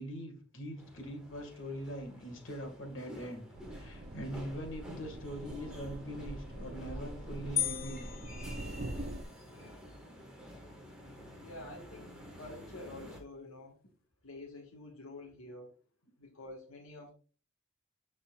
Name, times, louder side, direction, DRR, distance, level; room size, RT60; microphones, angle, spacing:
voice 1, 0.0-8.1, equal, 60° left, 2 dB, 1.8 m, -42 dB
sound 1, 0.8-13.2, equal, 5° right, 1.6 m, -50 dB
sound 2, 3.6-9.2, right 1 dB, 45° right, 0.7 m, -43 dB
sound 3, 7.6-9.3, left 11 dB, 45° left, 0.4 m, -37 dB
voice 2, 11.4-13.7 14.2-15.7 16.2-17.1, left 2 dB, 80° left, -1 dB, 1.5 m, -48 dB
12.0 x 4.2 x 2.4 m, 0.38 s
head